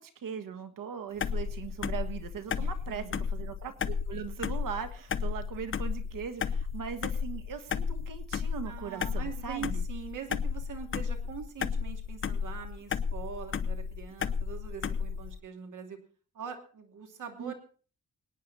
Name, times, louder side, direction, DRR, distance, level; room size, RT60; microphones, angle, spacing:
voice 1, 0.0-3.0 3.3-9.8 17.4-17.5, right 7 dB, 85° right, 9 dB, 1.5 m, -39 dB
sound 1, 1.2-15.4, left 6 dB, 40° left, 0.7 m, -33 dB
voice 2, 2.6-3.3 8.6-16.0 16.3-17.5, right 7 dB, 70° right, 4 dB, 2.9 m, -43 dB
24.5 x 9.6 x 4.2 m, 0.40 s
wide cardioid pair, 115°, 32 cm